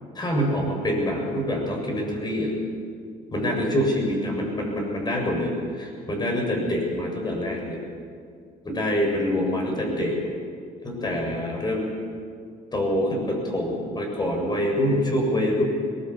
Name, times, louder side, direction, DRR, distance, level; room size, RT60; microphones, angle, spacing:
voice 1, 0.1-2.5 3.3-7.8 8.6-10.1 10.8-11.9 12.7-15.6, left 1 dB, 25° left, 1 dB, 7.4 m, -25 dB
22.0 x 20.5 x 8.6 m, 2.2 s
cardioid pair, 110°, 17 cm